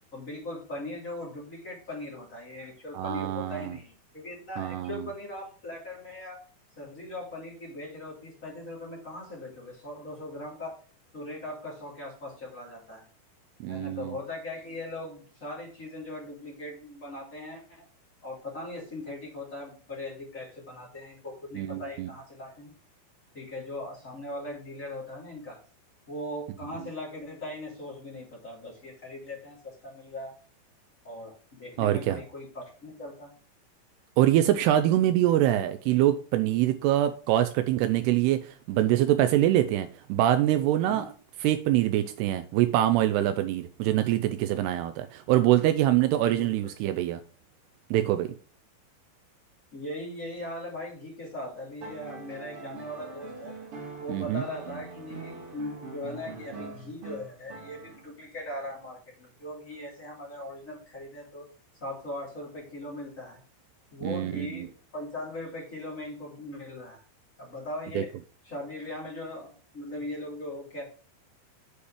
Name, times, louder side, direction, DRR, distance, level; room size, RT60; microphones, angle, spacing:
voice 1, 0.1-6.4 6.8-10.7 11.1-13.0 13.7-17.8 18.2-22.7 23.3-25.6 26.1-30.3 31.0-33.3 40.9-41.0 46.3-46.5 49.7-53.5 54.0-61.4 61.8-63.4 63.9-67.0 67.4-68.1 68.4-69.5 69.7-70.9, left 1 dB, 20° left, 2.7 m, -39 dB
voice 2, 2.9-3.8 4.6-5.0 13.6-14.2 21.6-22.1 31.8-32.2 34.2-41.1 41.4-47.2 47.9-48.4 54.1-54.4 64.0-64.7 68.0-68.1, right 13 dB, 85° right, 2.3 m, -24 dB
sound 1, 51.8-58.2 59.7-59.8, right 3 dB, 45° right, 2.0 m, -43 dB
8.3 x 5.2 x 4.8 m
omnidirectional pair, 5.2 m